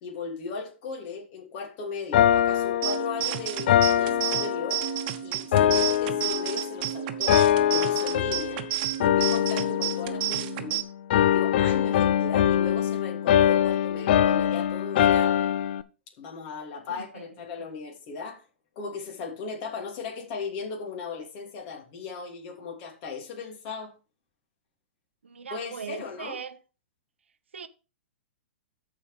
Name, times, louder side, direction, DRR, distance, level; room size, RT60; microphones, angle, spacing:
voice 1, 0.0-4.8 5.2-8.6 9.0-10.8 11.1-15.4 16.2-18.4 18.7-23.9 25.5-26.4, left 4 dB, 45° left, 3.0 m, -37 dB
sound 1, 2.1-5.1 5.5-6.9 7.3-8.7 9.0-10.7 11.1-15.8, left 10 dB, 60° left, 0.6 m, -23 dB
sound 2, 2.8-10.8, right 15 dB, 45° right, 1.1 m, -31 dB
voice 2, 16.9-17.3 25.2-26.6 27.5-27.7, right 7 dB, 90° right, 0.8 m, -39 dB
14.0 x 5.1 x 3.6 m
hypercardioid pair, 125°, 6 cm